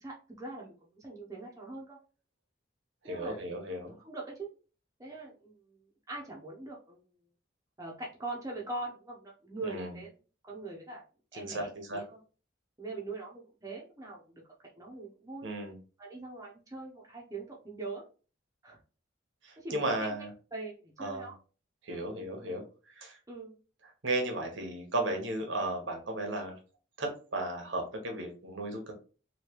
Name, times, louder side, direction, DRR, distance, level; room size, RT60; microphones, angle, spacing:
voice 1, 0.0-2.0 3.0-3.4 4.0-4.5 5.0-5.6 6.1-7.0 7.8-10.1 10.4-11.0 11.3-12.2 12.8-14.4 14.8-15.5 16.0-18.1 18.6-18.8 19.6-20.2 20.5-21.4 23.3-23.6, right 3 dB, 15° right, -3 dB, 0.6 m, -42 dB
voice 2, 3.0-3.9 9.6-9.9 11.3-12.0 15.4-15.7 19.4-20.3 21.0-21.3 21.8-23.2 24.0-26.6 27.0-28.9, right 2 dB, 80° right, 3 dB, 1.0 m, -35 dB
3.2 x 2.8 x 2.9 m, 0.36 s
head